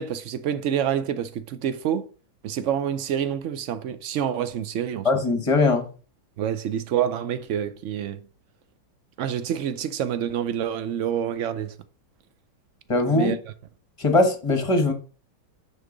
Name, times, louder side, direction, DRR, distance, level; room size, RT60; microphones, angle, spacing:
voice 1, 0.0-2.1 2.4-5.1 6.4-8.2 9.2-11.7 13.1-13.4, right 9 dB, 75° right, 0.6 m, -27 dB
voice 2, 5.0-5.9 12.9-13.4 14.0-14.9, left 2 dB, 20° left, 0.9 m, -20 dB
9.5 x 4.2 x 3.8 m
omnidirectional pair, 1.9 m